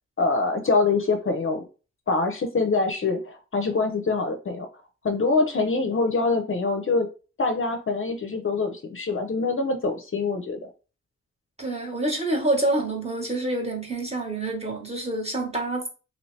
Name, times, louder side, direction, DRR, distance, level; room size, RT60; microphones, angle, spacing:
voice 1, 0.2-1.6 2.1-4.7 5.0-7.1 7.4-10.7, left 3 dB, 45° left, 0.6 m, -24 dB
voice 2, 11.6-15.9, right 2 dB, 20° right, 1.1 m, -27 dB
2.9 x 2.7 x 3.2 m
cardioid pair, 75°, 31 cm